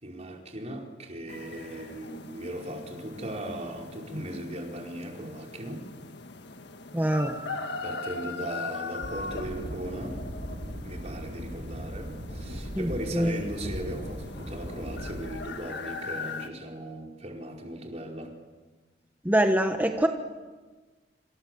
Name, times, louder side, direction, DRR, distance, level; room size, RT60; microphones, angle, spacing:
voice 1, 0.0-5.9 7.8-10.2 10.8-18.3, right 1 dB, 40° right, 1 dB, 4.9 m, -38 dB
sound 1, 1.3-16.5, left 3 dB, 70° left, 1.8 m, -40 dB
voice 2, 6.9-7.4 12.7-13.3 19.2-20.1, right 1 dB, 10° right, 4 dB, 1.4 m, -24 dB
sound 2, 9.0-15.3, equal, 55° right, 6.5 m, -38 dB
27.5 x 27.0 x 7.8 m, 1.3 s
head